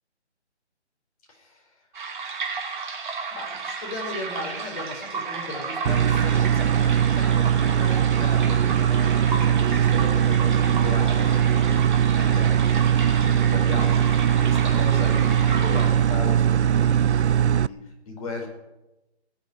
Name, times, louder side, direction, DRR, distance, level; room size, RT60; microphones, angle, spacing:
voice 1, 1.3-1.8 3.3-14.1 14.4-18.5, left 2 dB, 30° left, 0 dB, 5.3 m, -37 dB
sound 1, 1.9-16.3, right 5 dB, 45° right, 2.6 m, -33 dB
sound 2, 5.9-17.7, right 9 dB, 75° right, 0.5 m, -20 dB
19.5 x 7.5 x 9.3 m, 0.97 s
hypercardioid pair, 160°, 34 cm